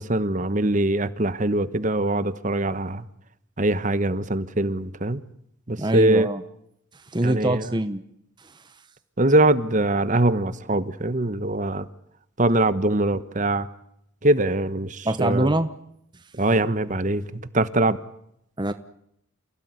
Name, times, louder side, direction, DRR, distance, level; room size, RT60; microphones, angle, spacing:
voice 1, 0.0-3.0 3.6-5.2 5.7-6.3 7.2-7.7 9.2-11.9 12.4-13.7 14.2-15.5 16.4-17.2 17.5-18.0, right 2 dB, 35° right, 14 dB, 1.1 m, -22 dB
voice 2, 5.8-6.4 7.1-8.0 15.0-15.7 18.6-18.7, right 1 dB, 20° right, 10 dB, 1.0 m, -23 dB
29.0 x 17.0 x 9.6 m, 0.75 s
head